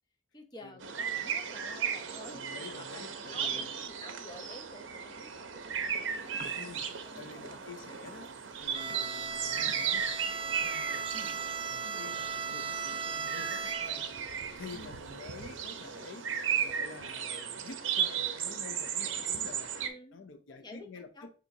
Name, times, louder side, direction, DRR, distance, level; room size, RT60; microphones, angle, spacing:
voice 1, 0.3-2.4 2.8-7.6 8.1-8.2 9.8-10.0 11.1-11.3 11.8-12.1 14.7-15.0 19.8-20.2 20.5-21.3, left 2 dB, 25° left, 0.7 m, -51 dB
sound 1, 0.8-19.9, right 7 dB, 80° right, 0.6 m, -36 dB
voice 2, 2.3-3.7 6.5-8.3 8.6-10.3 10.6-11.1 11.6-14.2 14.6-19.7 20.1-21.3, left 4 dB, 80° left, 0.6 m, -49 dB
sound 2, 6.1-16.8, right 3 dB, 50° right, 0.8 m, -59 dB
Bowed string instrument, 8.7-14.2, right 5 dB, 30° right, 0.4 m, -37 dB
6.9 x 2.8 x 2.6 m
head